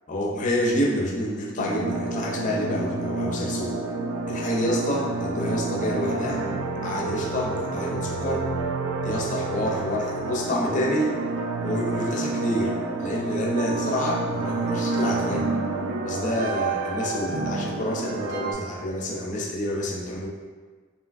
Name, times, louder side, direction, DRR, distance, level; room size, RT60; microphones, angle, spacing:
voice 1, 0.1-3.8 4.3-6.4 6.8-8.5 9.0-11.2 11.6-15.5 16.0-20.3, equal, 40° left, -2 dB, 0.4 m, -28 dB
sound 1, 1.6-18.5, right 3 dB, 90° right, 0.4 m, -29 dB
3.3 x 2.7 x 2.4 m, 1.5 s
head